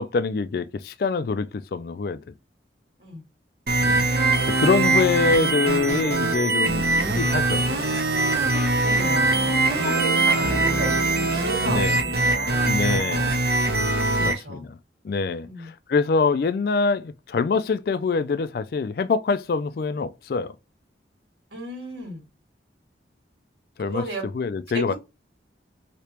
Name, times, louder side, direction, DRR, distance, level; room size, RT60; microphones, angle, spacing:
voice 1, 0.0-2.3 3.8-4.1 4.5-7.7 9.8-10.0 11.6-12.0 12.7-13.3 14.2-14.7 15.0-20.5 23.8-24.0 24.3-24.9, left 4 dB, 55° left, 0.3 m, -25 dB
sound 1, 3.7-14.3, right 2 dB, 55° right, 0.8 m, -22 dB
sound 2, 5.7-12.6, equal, 5° right, 0.7 m, -36 dB
voice 2, 8.5-13.3 14.1-14.7 15.4-15.7 21.5-22.2 23.9-24.3 24.7-24.9, right 1 dB, 70° right, 1.7 m, -34 dB
3.3 x 2.9 x 2.9 m
head